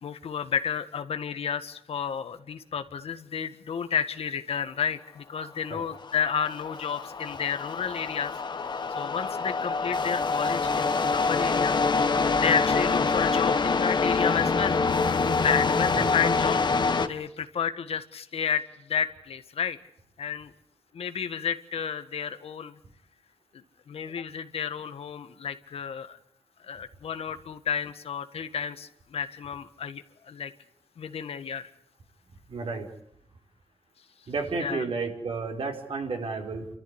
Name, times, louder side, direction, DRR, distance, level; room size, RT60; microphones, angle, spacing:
voice 1, 0.0-8.3 8.7-11.8 12.1-14.8 15.4-16.6 17.0-19.8 20.2-20.5 20.9-22.8 23.5-26.2 26.6-30.5 31.0-31.7 34.6-34.8, left 7 dB, 80° left, 10 dB, 1.7 m, -31 dB
sound 1, 5.9-17.1, left 4 dB, 50° left, 1.5 m, -26 dB
voice 2, 32.5-32.9 34.3-36.7, right 4 dB, 65° right, 2 dB, 4.9 m, -32 dB
29.5 x 14.0 x 10.0 m, 0.74 s
wide cardioid pair, 100°, 10 cm